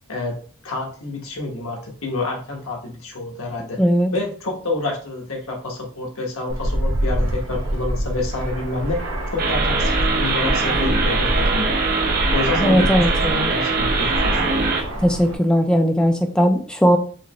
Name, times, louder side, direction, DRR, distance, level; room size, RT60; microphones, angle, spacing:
voice 1, 0.6-3.8 4.1-9.0 9.3-11.8 12.3-14.4, left 2 dB, 90° left, 0 dB, 1.1 m, -28 dB
voice 2, 3.8-4.1 12.6-13.5 15.0-17.0, equal, 5° left, 4 dB, 0.3 m, -18 dB
Fixed-wing aircraft airplane, 6.5-15.3, equal, 80° right, 0.9 m, -25 dB
sound 1, 9.4-14.8, right 3 dB, 45° right, 0.7 m, -22 dB
4.8 x 2.1 x 3.0 m, 0.43 s
head